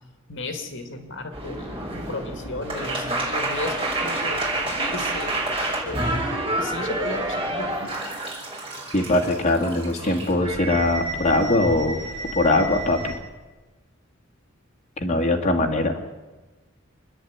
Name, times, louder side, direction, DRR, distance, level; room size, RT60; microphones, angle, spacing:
voice 1, 0.3-6.2 6.6-8.0, left 2 dB, 65° left, 6 dB, 2.3 m, -34 dB
sound 1, 1.3-13.1, right 2 dB, 25° right, 6.1 m, -29 dB
voice 2, 8.9-12.0 12.3-13.1 15.0-16.0, left 2 dB, 35° left, 0 dB, 2.4 m, -21 dB
26.5 x 10.5 x 9.6 m, 1.2 s
head